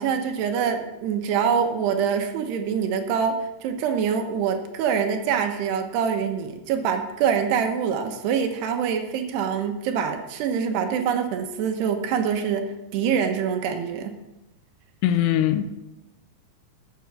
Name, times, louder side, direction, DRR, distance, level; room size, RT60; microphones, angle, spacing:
voice 1, 0.0-14.2, right 7 dB, 80° right, 3.2 m, -25 dB
voice 2, 15.0-15.7, left 11 dB, 85° left, 2.8 m, -21 dB
12.5 x 8.4 x 6.1 m
omnidirectional pair, 4.8 m